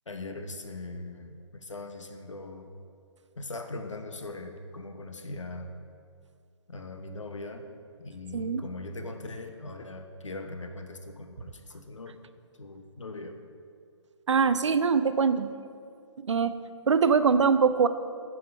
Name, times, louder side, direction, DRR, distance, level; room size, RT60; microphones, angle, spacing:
voice 1, 0.1-2.7 3.4-5.7 6.7-7.7 8.0-12.2 12.6-13.4, left 2 dB, 80° left, 6 dB, 0.8 m, -40 dB
voice 2, 8.3-8.7 14.3-15.5 16.2-16.5 16.9-17.9, right 5 dB, 70° right, 12 dB, 0.4 m, -23 dB
7.7 x 4.9 x 5.2 m, 2.4 s
figure-of-eight pair, 135°, 16 cm